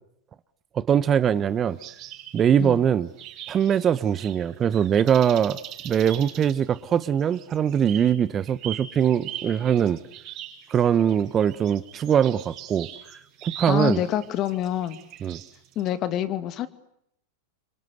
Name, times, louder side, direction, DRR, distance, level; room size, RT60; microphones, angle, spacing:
voice 1, 0.7-1.8 2.3-3.1 3.5-5.6 5.8-10.0 10.7-12.9 13.4-14.0 15.2-15.4, right 8 dB, 30° right, 1.1 m, -22 dB
sound 1, 1.8-2.7 3.2-15.9, right 11 dB, 45° right, 6.6 m, -41 dB
voice 2, 13.6-15.0 15.8-16.7, left 11 dB, 40° left, 2.4 m, -27 dB
27.5 x 25.5 x 8.1 m
hypercardioid pair, 95°, 0 cm